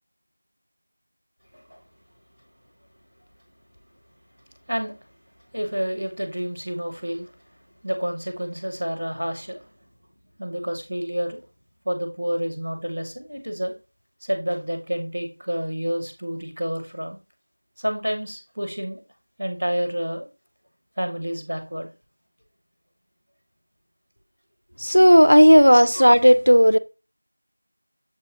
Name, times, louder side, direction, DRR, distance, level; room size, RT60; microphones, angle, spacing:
voice 1, 5.5-7.3 7.8-9.6 10.4-11.4 11.8-13.7 14.3-17.2 17.8-19.0 19.4-20.3 21.0-21.9, equal, ahead, 0.4 m, -29 dB
voice 2, 24.8-26.8, equal, 80° right, 0.6 m, -13 dB
7.1 x 4.5 x 4.1 m
figure-of-eight pair, 180°, 0 cm